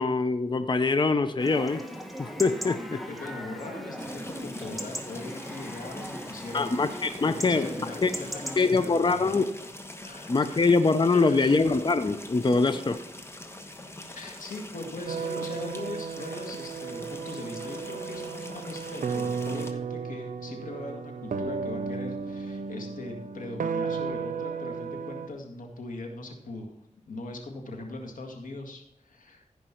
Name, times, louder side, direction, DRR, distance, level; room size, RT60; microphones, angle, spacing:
voice 1, 0.0-1.8 2.2-3.0 6.5-7.7 8.0-8.1 8.6-9.5 10.3-13.0, left 3 dB, 35° left, 10 dB, 0.6 m, -23 dB
Chatter / Livestock farm animals working animals / Chirp tweet, 1.4-8.6, equal, ahead, 1.6 m, -38 dB
voice 2, 3.1-9.4 10.0-10.7 11.1-11.7 14.1-26.7 27.1-29.5, left 2 dB, 85° left, 2 dB, 2.0 m, -40 dB
sound 1, 4.0-19.7, left 1 dB, 20° left, 1.2 m, -44 dB
sound 2, 15.1-25.3, right 5 dB, 80° right, 0.7 m, -34 dB
15.0 x 5.4 x 4.4 m, 0.76 s
cardioid pair, 65°, 13 cm